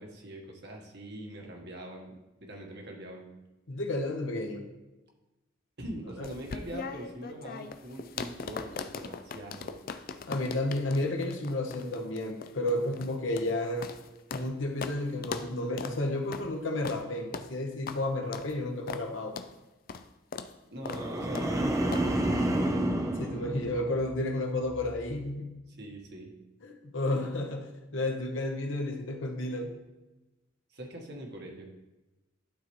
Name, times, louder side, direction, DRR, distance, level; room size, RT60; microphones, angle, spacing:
voice 1, 0.0-3.3 5.8-9.8 20.7-22.6 25.8-26.3 30.7-31.7, right 1 dB, 55° right, 1 dB, 1.3 m, -43 dB
voice 2, 3.7-4.6 6.2-6.3 10.3-13.9 14.3-19.4 23.2-25.5 26.6-29.7, left 1 dB, 70° left, 3 dB, 1.0 m, -32 dB
sound 1, 6.2-14.5 14.8-15.0 15.2-15.5 15.8-16.0 16.3-16.5 16.8-17.0 17.3-17.5 17.9-18.0 18.3-18.5 18.9-19.1 19.4-19.5 19.9-20.1 20.3-20.5 20.9-21.1 21.4-21.5 21.9-22.1, left 5 dB, 45° left, 0.4 m, -39 dB
sound 2, 20.8-24.3 24.7-25.1, right 1 dB, 15° right, 0.4 m, -30 dB
11.5 x 4.0 x 3.1 m, 1.0 s
head